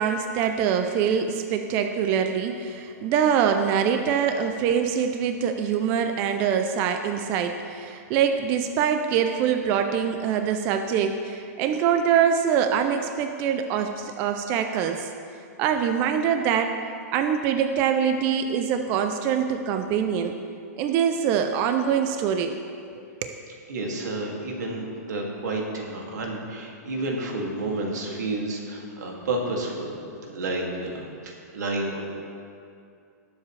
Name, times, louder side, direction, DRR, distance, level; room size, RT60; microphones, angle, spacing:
voice 1, 0.0-15.1 15.6-16.8 17.1-20.4 20.8-22.6 23.0-23.4, right 8 dB, 20° right, 6 dB, 0.3 m, -24 dB
voice 2, 23.7-29.9 30.2-32.0, right 2 dB, 85° right, 0 dB, 2.2 m, -30 dB
19.0 x 7.3 x 3.2 m, 2.5 s
hypercardioid pair, 170°, 9 cm